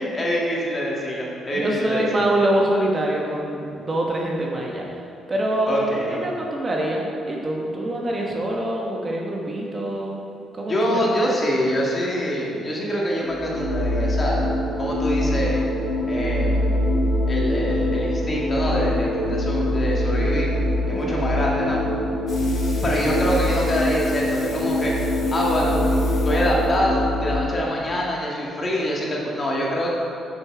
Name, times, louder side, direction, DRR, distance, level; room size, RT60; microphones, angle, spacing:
voice 1, 0.0-2.2 5.7-6.2 10.7-14.5 14.8-15.6 16.1-16.6 17.3-20.5 20.9-21.8 22.8-24.9 25.3-25.8 26.3-29.9, equal, 30° left, -4 dB, 1.9 m, -25 dB
voice 2, 1.5-5.0 5.3-10.2 10.5-10.8 20.9-21.2 23.1-23.2, right 1 dB, 30° right, -1 dB, 1.2 m, -25 dB
sound 1, 13.0-27.4, left 1 dB, 80° right, 1.2 m, -23 dB
sound 2, 22.3-27.6, left 3 dB, 55° left, 1.8 m, -42 dB
7.0 x 6.7 x 4.7 m, 2.6 s
cardioid pair, 90°, 0 cm